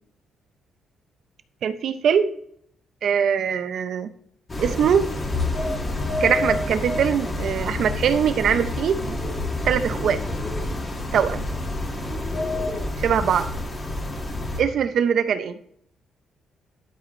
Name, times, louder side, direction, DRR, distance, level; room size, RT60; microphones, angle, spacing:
voice 1, 1.6-2.3 3.0-4.1 4.6-5.1 6.2-9.2 9.6-10.2 11.1-11.5 13.0-13.5 14.6-15.5, right 7 dB, 65° right, 11 dB, 0.7 m, -22 dB
sound 1, 4.5-14.6, left 2 dB, 30° left, 1.9 m, -28 dB
12.0 x 5.0 x 3.2 m, 0.68 s
cardioid pair, 90°, 0 cm